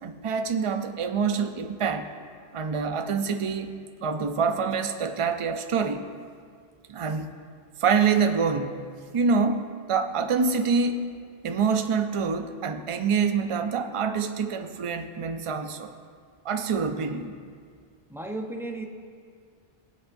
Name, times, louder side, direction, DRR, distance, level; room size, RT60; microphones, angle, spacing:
voice 1, 0.0-2.1 2.5-3.7 4.0-6.1 6.9-7.3 7.8-8.9 9.1-11.1 11.4-15.9 16.4-17.3, right 5 dB, 40° right, 7 dB, 0.5 m, -26 dB
voice 2, 18.1-18.8, right 2 dB, 5° right, 2 dB, 0.7 m, -34 dB
20.5 x 8.0 x 2.6 m, 2.1 s
omnidirectional pair, 1.1 m